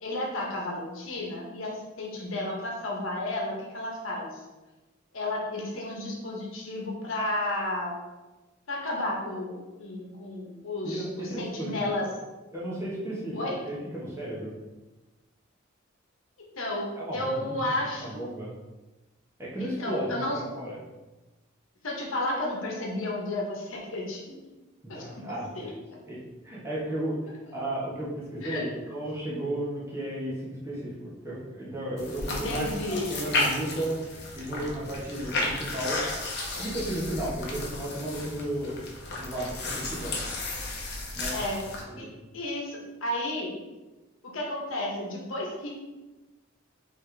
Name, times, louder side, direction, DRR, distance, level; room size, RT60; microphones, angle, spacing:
voice 1, 0.0-4.4 5.1-8.0 8.7-11.0 11.4-12.1 13.3-13.6 16.6-18.3 19.8-20.4 21.8-24.2 24.9-25.7 28.4-28.7 32.3-33.1 41.3-41.6 42.0-42.1 42.3-43.5 44.3-45.7, left 1 dB, 75° left, -2 dB, 1.0 m, -32 dB
voice 2, 10.8-12.1 12.5-13.4 13.7-14.5 17.0-17.7 18.0-18.5 19.4-20.8 24.8-25.7 26.1-26.2 26.4-27.2 27.5-30.9 31.2-36.1 36.6-38.8 39.2-40.2 41.2-41.3 41.9-42.1, right 1 dB, 15° right, -7 dB, 1.0 m, -34 dB
sound 1, 32.0-41.8, left 2 dB, 55° left, 0.8 m, -33 dB
4.2 x 3.3 x 3.3 m, 1.1 s
head